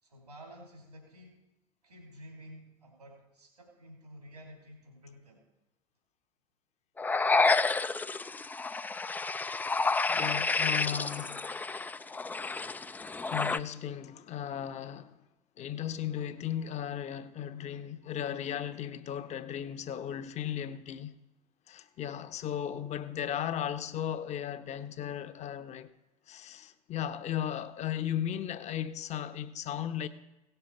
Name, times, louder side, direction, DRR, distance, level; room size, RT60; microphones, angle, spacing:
voice 1, 0.0-1.4 1.8-5.4, equal, 85° right, 3.2 m, -51 dB
sound 1, 7.0-13.6, left 3 dB, 10° left, 0.4 m, -30 dB
voice 2, 10.1-11.6 12.1-12.4 12.6-12.8 13.3-15.2 15.6-21.1 21.7-25.9 26.3-30.1, left 10 dB, 35° left, 0.9 m, -36 dB
17.0 x 6.8 x 4.7 m
figure-of-eight pair, 70°, 20 cm